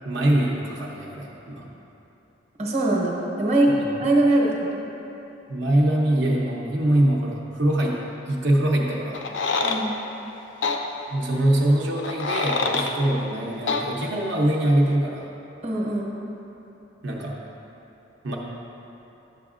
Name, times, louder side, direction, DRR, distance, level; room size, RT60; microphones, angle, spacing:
voice 1, 0.0-1.7 3.7-3.8 5.5-8.0 8.3-9.2 11.1-15.3 17.0-17.4 18.2-18.4, right 1 dB, 65° right, -3 dB, 0.7 m, -23 dB
voice 2, 2.6-3.7 4.0-4.9 9.6-9.9 15.6-16.2, right 2 dB, 35° right, -3 dB, 0.9 m, -22 dB
sound 1, 9.1-9.8 10.6-10.8 12.0-12.9 13.7-13.8, left 4 dB, 75° left, 0.5 m, -25 dB
10.5 x 7.0 x 2.4 m, 3.0 s
head